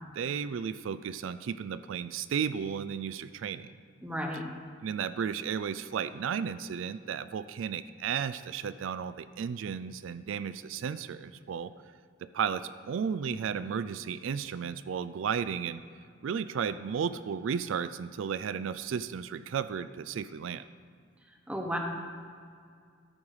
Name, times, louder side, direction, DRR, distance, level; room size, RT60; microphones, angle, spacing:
voice 1, 0.1-3.7 4.8-11.7 12.2-15.8 16.2-20.6, right 7 dB, 80° right, 13 dB, 0.3 m, -34 dB
voice 2, 4.0-4.5 21.5-21.8, equal, 5° right, 2 dB, 1.0 m, -33 dB
13.5 x 5.5 x 4.9 m, 2.2 s
head